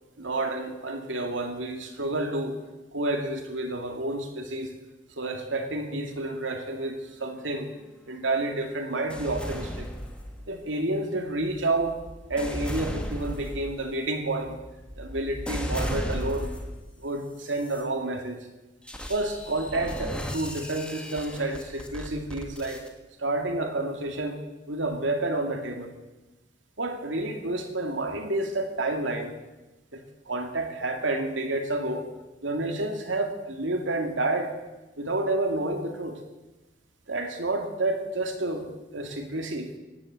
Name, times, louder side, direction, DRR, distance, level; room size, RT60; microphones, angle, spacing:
voice 1, 0.2-2.6 2.9-4.7 5.2-7.7 8.1-9.9 10.5-11.9 12.3-14.6 15.0-16.5 17.0-18.4 19.1-22.8 23.2-24.4 24.7-25.9 26.8-29.3 29.9-32.1 32.4-34.5 35.0-36.2 37.1-39.7, right 2 dB, 85° right, 4 dB, 2.5 m, -29 dB
sound 1, 9.1-10.7 11.3-16.8 17.4-17.8 18.9-22.9, equal, 5° left, 1.7 m, -35 dB
16.0 x 10.0 x 8.3 m, 1.1 s
head